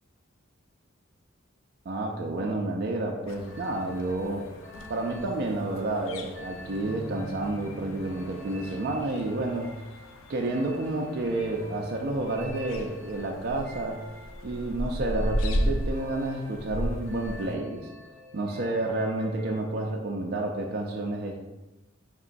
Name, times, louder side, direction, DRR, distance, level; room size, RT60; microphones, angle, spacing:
voice 1, 1.9-4.5 4.9-9.8 10.3-14.0 14.4-17.9 18.3-21.4, right 2 dB, 50° right, 0 dB, 0.4 m, -30 dB
sound 1, 3.3-17.6, equal, 85° left, 0.4 m, -36 dB
sound 2, 3.5-19.9, left 1 dB, 10° left, 0.7 m, -47 dB
5.5 x 2.9 x 2.5 m, 1.0 s
head